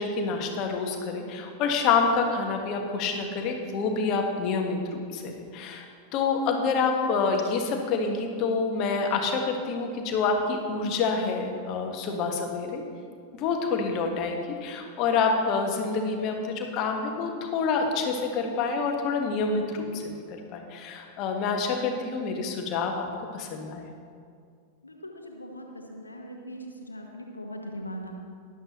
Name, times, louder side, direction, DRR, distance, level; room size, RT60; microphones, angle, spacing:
voice 1, 0.0-5.8 6.1-12.8 13.3-20.1 20.5-23.1 23.3-23.9, left 4 dB, 40° left, 3 dB, 1.4 m, -27 dB
voice 2, 24.8-28.1, equal, 80° left, 2 dB, 1.2 m, -40 dB
12.5 x 11.0 x 3.0 m, 2.2 s
figure-of-eight pair, 90°, 0 cm